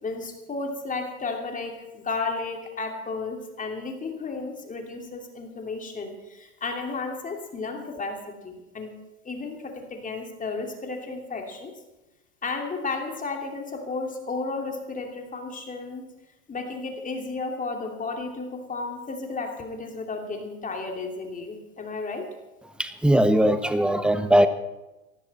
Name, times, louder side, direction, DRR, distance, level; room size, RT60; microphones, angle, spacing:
voice 1, 0.0-8.9 9.2-11.7 12.4-16.1 16.5-22.3, left 3 dB, 15° left, 3 dB, 2.8 m, -33 dB
voice 2, 22.8-24.5, equal, ahead, 11 dB, 0.9 m, -20 dB
18.5 x 14.0 x 4.3 m, 1.0 s
hypercardioid pair, 95°, 44 cm